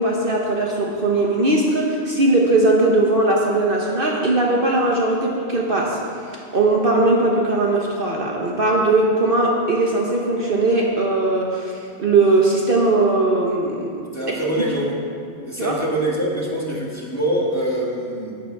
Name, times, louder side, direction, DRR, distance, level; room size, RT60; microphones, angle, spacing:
voice 1, 0.0-6.0 6.3-13.9 15.6-15.8, right 2 dB, 45° right, -2 dB, 1.2 m, -19 dB
voice 2, 14.1-14.9 15.4-18.3, right 1 dB, 15° left, -4 dB, 1.7 m, -24 dB
11.5 x 9.6 x 4.7 m, 2.5 s
omnidirectional pair, 1.3 m